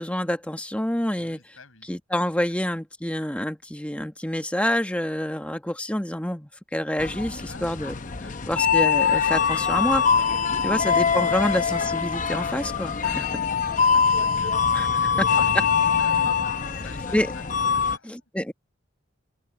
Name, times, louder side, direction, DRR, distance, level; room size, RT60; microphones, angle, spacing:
voice 1, 0.0-1.4 1.9-7.9 8.5-10.0 10.6-13.2 14.8-14.9 17.1-17.3 18.1-18.5, left 1 dB, 5° left, 1.2 m, -27 dB
voice 2, 1.1-1.9 7.5-8.0 8.2-8.5 10.2-11.0 11.4-11.6 12.8-15.6 15.9-18.3, left 4 dB, 85° left, 6.6 m, -48 dB
sound 1, 7.0-18.0, left 6 dB, 40° left, 0.8 m, -23 dB
open air
head